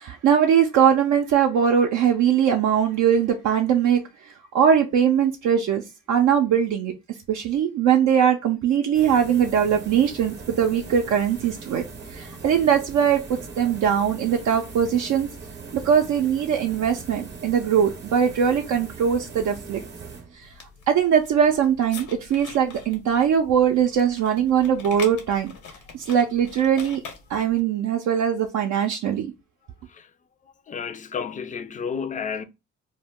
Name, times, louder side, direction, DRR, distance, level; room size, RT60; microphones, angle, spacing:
voice 1, 0.0-5.8 6.1-6.9 7.3-11.8 12.1-15.3 15.7-19.8 20.3-20.5 20.9-25.5 25.9-27.0 27.3-29.3, right 8 dB, 65° right, 0.5 m, -21 dB
sound 1, 8.9-20.6, right 4 dB, 35° right, 0.7 m, -40 dB
sound 2, 20.4-27.6, left 5 dB, 80° left, 0.9 m, -43 dB
voice 2, 30.7-32.4, left 6 dB, 25° left, 0.4 m, -31 dB
2.1 x 2.1 x 3.5 m
cardioid pair, 90°, 30 cm